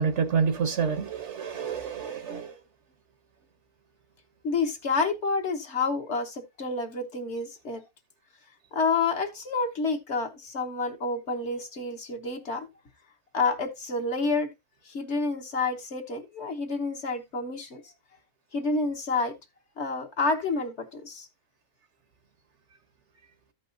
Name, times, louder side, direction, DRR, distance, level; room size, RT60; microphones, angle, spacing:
voice 1, 0.0-2.5, right 6 dB, 55° right, 1.0 m, -28 dB
voice 2, 4.4-7.8 8.7-12.7 13.3-14.5 14.8-17.9 18.5-19.4 19.8-21.3, left 4 dB, 50° left, 1.3 m, -29 dB
14.0 x 5.4 x 2.5 m
omnidirectional pair, 1.6 m